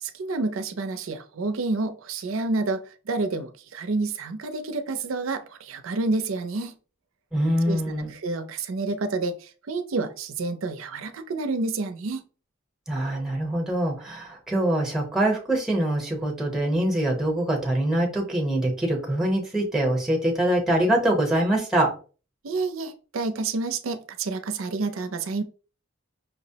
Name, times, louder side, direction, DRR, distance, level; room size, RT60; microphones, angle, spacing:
voice 1, 0.0-6.8 7.7-12.2 22.4-25.4, right 3 dB, 75° right, 0.5 m, -29 dB
voice 2, 7.3-8.1 12.9-21.9, right 1 dB, 5° right, 0.8 m, -24 dB
5.6 x 2.0 x 2.7 m
head